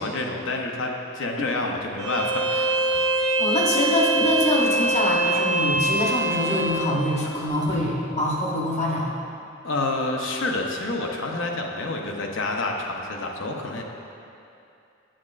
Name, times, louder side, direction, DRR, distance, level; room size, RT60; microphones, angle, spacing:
voice 1, 0.0-2.7 7.7-7.8 9.6-13.8, left 2 dB, 80° left, 1 dB, 0.7 m, -28 dB
Bowed string instrument, 2.0-6.8, right 2 dB, 75° right, 1.3 m, -23 dB
voice 2, 3.4-9.1, left 1 dB, 35° left, -3 dB, 0.9 m, -24 dB
8.6 x 7.3 x 2.4 m, 2.7 s
head